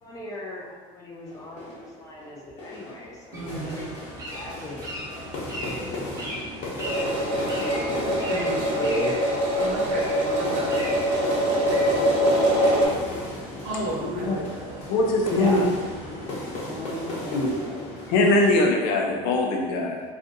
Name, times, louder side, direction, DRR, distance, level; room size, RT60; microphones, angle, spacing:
voice 1, 0.0-3.9 4.3-4.8 5.1-6.1 7.3-9.2 15.3-15.7, equal, 20° left, -3 dB, 0.4 m, -36 dB
sound 1, 1.2-18.6, left 2 dB, 40° left, 0.9 m, -37 dB
sound 2, 3.3-16.5, equal, 20° right, 0.6 m, -39 dB
voice 2, 3.3-3.9 8.3-9.0 9.6-11.0 11.4-12.9 13.2-15.0 16.6-18.1, right 1 dB, 50° right, -3 dB, 0.8 m, -36 dB
sound 3, 6.8-12.9, equal, 80° right, 1.1 m, -23 dB
voice 3, 14.9-15.6 17.3-17.5 18.1-20.0, left 2 dB, 65° left, 0 dB, 0.6 m, -21 dB
2.6 x 2.5 x 3.6 m, 1.4 s
cardioid pair, 155°, 17 cm